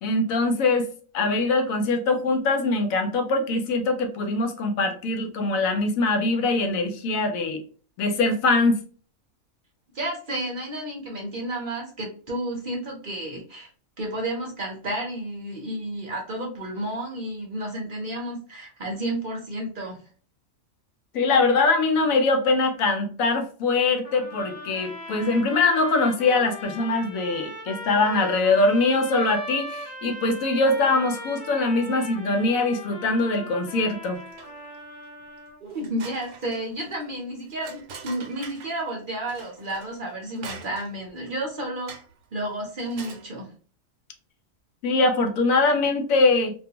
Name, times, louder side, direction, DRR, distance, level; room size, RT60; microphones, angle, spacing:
voice 1, 0.0-0.9 1.1-7.6 8.0-8.8 21.1-34.2 44.8-46.5, left 3 dB, 80° left, 5 dB, 1.0 m, -22 dB
voice 2, 9.9-13.7 14.0-20.0 35.6-41.9 42.3-43.5, right 1 dB, 45° right, 0 dB, 0.7 m, -31 dB
sound 1, 24.0-35.6, left 1 dB, 40° left, 0.9 m, -39 dB
sound 2, 34.1-34.8 35.2-35.3 35.7-38.8 39.3-41.1 41.9-42.2 42.7-43.3, right 5 dB, 70° right, 1.0 m, -44 dB
2.4 x 2.3 x 2.7 m, 0.40 s
omnidirectional pair, 1.4 m